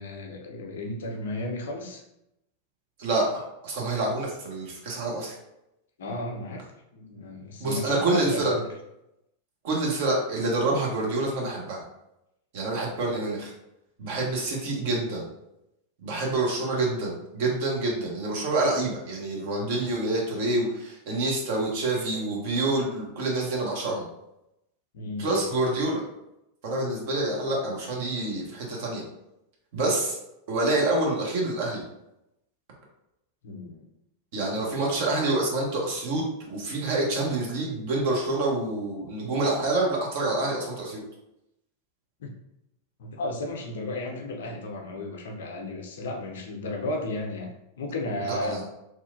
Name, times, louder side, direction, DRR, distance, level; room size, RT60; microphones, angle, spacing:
voice 1, 0.0-2.0 6.0-6.6 6.9-8.7 24.9-25.4 33.4-33.8 34.5-34.6 42.2-42.3 43.0-47.5 47.8-48.6, left 2 dB, 60° left, 1 dB, 0.5 m, -33 dB
voice 2, 3.0-5.3 7.6-8.5 9.6-11.8 12.5-13.5 14.0-15.3 16.0-24.1 25.2-26.0 26.6-29.0 29.7-30.2 30.5-31.8 34.3-41.0 48.2-48.7, right 2 dB, 50° right, -2 dB, 0.8 m, -27 dB
2.9 x 2.4 x 2.5 m, 0.85 s
figure-of-eight pair, 90°, 0 cm